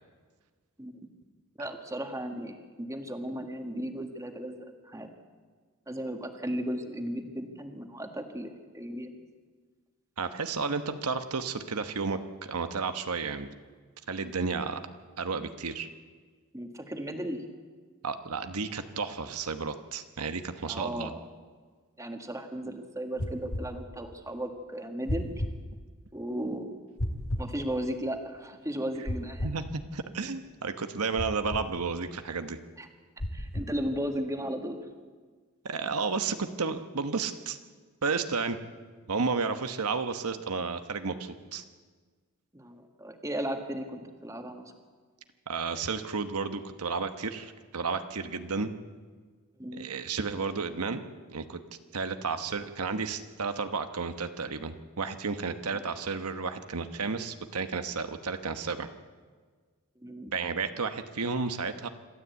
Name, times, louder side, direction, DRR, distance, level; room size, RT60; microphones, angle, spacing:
voice 1, 1.6-5.1 5.9-9.2 16.5-17.4 20.7-21.2 22.0-25.5 26.1-26.8 27.4-29.5 32.8-32.9 33.3-34.8 42.5-44.7 49.6-49.9 60.0-60.3, equal, 15° right, 5 dB, 1.6 m, -35 dB
voice 2, 10.2-13.5 14.1-14.8 15.2-15.9 18.0-21.1 29.4-32.6 35.6-37.6 38.0-38.6 39.1-41.6 45.5-48.7 49.7-51.0 51.3-51.6 51.9-58.9 60.3-61.9, right 4 dB, 85° right, 8 dB, 1.1 m, -32 dB
sound 1, 23.2-23.7 25.1-25.5 27.0-27.5 29.1-29.6 31.2-31.7 33.2-33.7, left 1 dB, 70° left, 2.3 m, -32 dB
26.0 x 13.0 x 8.2 m, 1.5 s
head